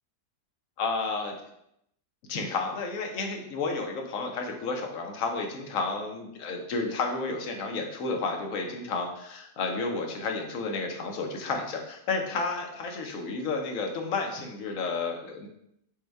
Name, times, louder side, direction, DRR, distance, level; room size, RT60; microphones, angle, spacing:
voice 1, 0.8-1.4 2.3-15.5, left 3 dB, 60° left, 3 dB, 1.0 m, -31 dB
5.2 x 2.2 x 4.5 m, 0.76 s
omnidirectional pair, 1.8 m